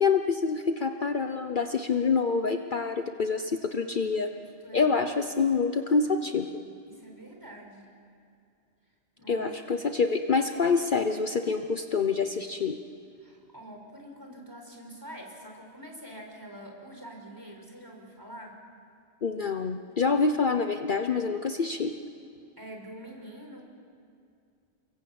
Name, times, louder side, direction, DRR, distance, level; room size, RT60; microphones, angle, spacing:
voice 1, 0.0-4.3 4.7-6.5 9.3-12.8 19.2-21.9, left 5 dB, 50° left, 7 dB, 1.0 m, -26 dB
voice 2, 4.0-5.0 6.9-7.9 9.2-9.8 13.2-18.6 22.6-23.6, right 1 dB, 20° right, 1 dB, 5.1 m, -46 dB
29.5 x 22.5 x 8.7 m, 2.4 s
omnidirectional pair, 1.2 m